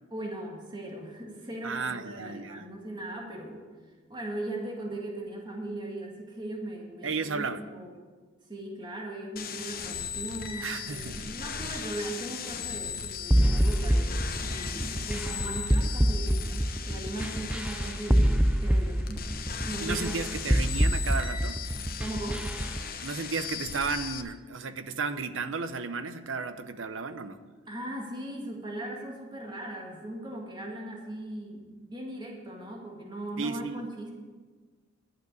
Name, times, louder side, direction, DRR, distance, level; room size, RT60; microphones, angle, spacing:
voice 1, 0.1-3.7 4.1-7.9 8.5-19.3 19.6-20.2 20.4-20.6 22.0-22.4 27.7-34.1, right 1 dB, 25° right, 0 dB, 1.9 m, -38 dB
voice 2, 1.6-2.7 7.0-7.6 10.6-11.3 19.8-21.6 23.0-27.4 33.4-33.9, right 4 dB, 85° right, 12 dB, 0.8 m, -33 dB
sound 1, 9.4-24.2, left 7 dB, 50° left, 0.9 m, -38 dB
sound 2, 13.3-22.8, equal, 5° right, 0.4 m, -26 dB
11.5 x 7.2 x 8.1 m, 1.4 s
head